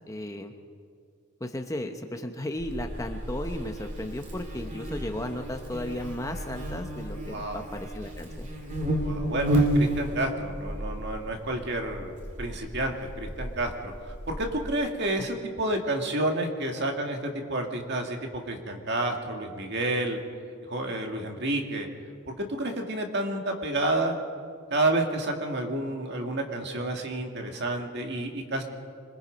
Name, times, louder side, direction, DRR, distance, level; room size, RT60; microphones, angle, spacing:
voice 1, 0.1-0.5 1.4-8.5 15.2-15.3, left 1 dB, 15° left, 5 dB, 0.9 m, -35 dB
Buzz, 2.6-14.7, right 1 dB, 35° right, 2.5 m, -32 dB
voice 2, 7.2-7.6 9.0-12.1 12.4-20.2 20.7-21.9 22.4-24.2 24.7-28.6, right 1 dB, 50° right, 3 dB, 2.2 m, -30 dB
26.0 x 21.5 x 5.2 m, 2.2 s
head